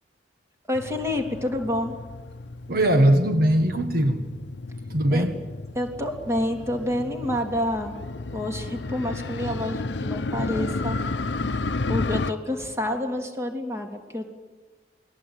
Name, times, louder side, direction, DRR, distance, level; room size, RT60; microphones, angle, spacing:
Motorcycle, 0.7-12.3, left 3 dB, 70° left, 0.8 m, -32 dB
voice 1, 0.7-2.0 5.1-5.3 5.7-8.0 8.3-11.0 11.9-14.3, left 1 dB, 15° right, 3.2 m, -28 dB
voice 2, 2.7-4.2 4.9-5.4, right 1 dB, 55° right, 1.6 m, -20 dB
28.5 x 21.0 x 9.1 m
head